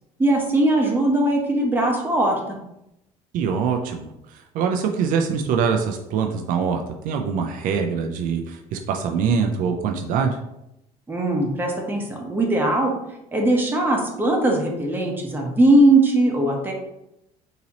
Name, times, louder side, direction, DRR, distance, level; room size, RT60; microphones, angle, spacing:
voice 1, 0.2-2.6 11.1-12.9 13.3-16.7, right 1 dB, 15° right, -1 dB, 0.9 m, -20 dB
voice 2, 3.3-10.4, right 6 dB, 70° right, 4 dB, 0.4 m, -24 dB
4.0 x 2.9 x 2.8 m, 0.85 s
cardioid pair, 100°, 14 cm